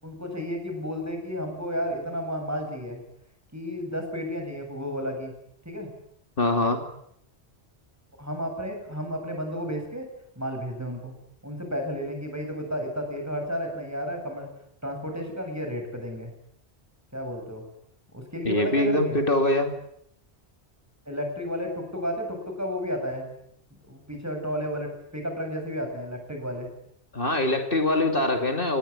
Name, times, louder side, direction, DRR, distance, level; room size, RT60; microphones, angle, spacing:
voice 1, 0.0-3.0 3.5-5.3 5.6-5.9 8.2-10.1 10.4-11.1 11.4-14.5 14.8-16.3 17.1-17.6 18.1-19.2 21.1-23.3 23.9-26.7, equal, 15° right, 3 dB, 7.9 m, -32 dB
voice 2, 6.4-6.8 18.4-19.7 27.1-28.8, left 1 dB, 55° left, 5 dB, 3.0 m, -23 dB
28.0 x 20.0 x 9.8 m, 0.72 s
omnidirectional pair, 1.1 m